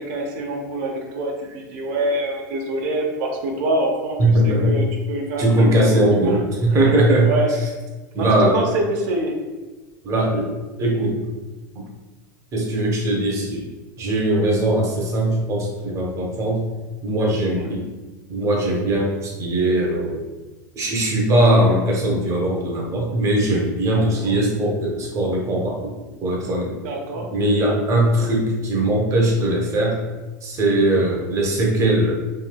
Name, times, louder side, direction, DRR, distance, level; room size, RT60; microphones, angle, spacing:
voice 1, 0.0-4.2 4.4-6.4 6.7-7.5 8.2-9.3 17.5-17.7 23.9-24.3 26.8-27.3 27.6-27.8 31.2-31.3, right 1 dB, 60° right, 1 dB, 0.6 m, -26 dB
voice 2, 4.2-4.7 5.4-7.3 8.1-8.5 10.0-10.5 10.8-11.2 11.7-11.8 12.5-13.6 14.0-16.6 17.0-17.9 18.3-20.2 20.8-26.0 26.2-26.8 27.1-30.0 30.4-32.1, right 1 dB, 30° right, -1 dB, 0.8 m, -20 dB
3.2 x 2.7 x 2.2 m, 1.2 s
supercardioid pair, 130°, 10 cm